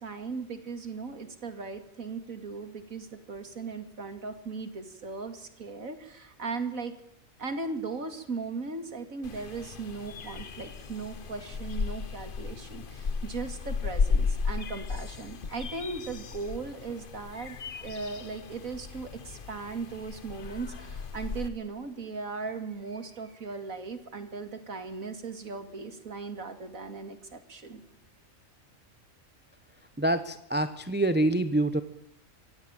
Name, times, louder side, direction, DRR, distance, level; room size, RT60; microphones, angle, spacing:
voice 1, 0.0-7.0 7.4-27.8, right 4 dB, 85° right, 9 dB, 2.9 m, -38 dB
sound 1, 9.2-21.5, left 5 dB, 45° left, 1.1 m, -34 dB
voice 2, 30.0-31.8, right 1 dB, 10° right, 11 dB, 1.0 m, -26 dB
24.5 x 16.0 x 9.0 m, 0.74 s
omnidirectional pair, 1.4 m